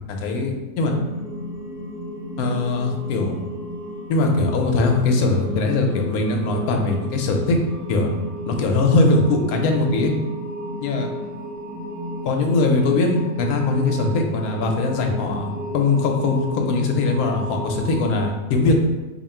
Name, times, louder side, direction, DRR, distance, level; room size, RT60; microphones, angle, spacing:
voice 1, 0.1-0.9 2.4-3.4 4.1-7.6 7.9-8.2 8.5-10.1 10.8-11.1 12.2-18.8, left 3 dB, 90° left, 2 dB, 1.1 m, -21 dB
sound 1, 0.8-18.3, equal, 35° right, 0.7 m, -33 dB
2.9 x 2.5 x 4.3 m, 1.1 s
omnidirectional pair, 1.5 m